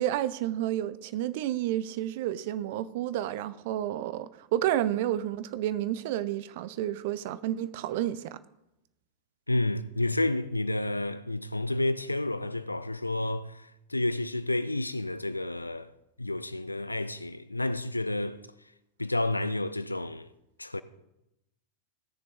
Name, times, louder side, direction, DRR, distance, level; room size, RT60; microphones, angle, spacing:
voice 1, 0.0-8.4, right 12 dB, 50° right, 0.6 m, -30 dB
voice 2, 9.5-15.9 16.2-18.4 19.0-20.3 20.6-20.8, left 2 dB, 85° left, 0.5 m, -30 dB
18.0 x 6.8 x 3.7 m
figure-of-eight pair, 90°, 0 cm